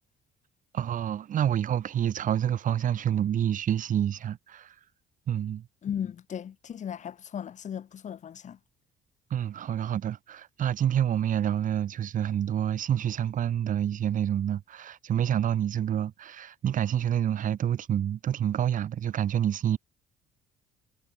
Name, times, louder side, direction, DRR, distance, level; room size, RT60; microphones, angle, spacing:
voice 1, 0.7-4.7 5.3-5.7 9.3-19.8, right 10 dB, 50° right, 1.8 m, -28 dB
voice 2, 5.8-8.6, left 8 dB, 45° left, 2.1 m, -36 dB
cardioid pair, 110°, 17 cm